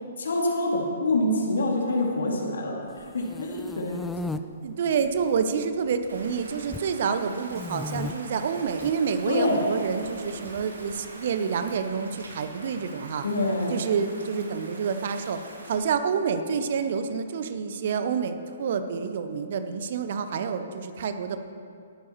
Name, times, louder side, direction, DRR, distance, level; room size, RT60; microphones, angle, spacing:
voice 1, 0.2-4.0 9.3-9.6 13.2-13.8, left 2 dB, 60° left, -1 dB, 2.4 m, -26 dB
sound 1, 3.0-4.4 5.1-5.7 5.9-6.9 7.5-8.1 8.7-8.9 10.1-11.0, left 3 dB, 5° left, 0.4 m, -36 dB
voice 2, 4.6-13.2 13.7-15.4 15.7-21.4, right 6 dB, 50° right, 9 dB, 0.8 m, -28 dB
Rain, 6.1-15.7, right 2 dB, 70° right, 2.4 m, -45 dB
18.5 x 12.0 x 3.1 m, 2.3 s
figure-of-eight pair, 125°, 0 cm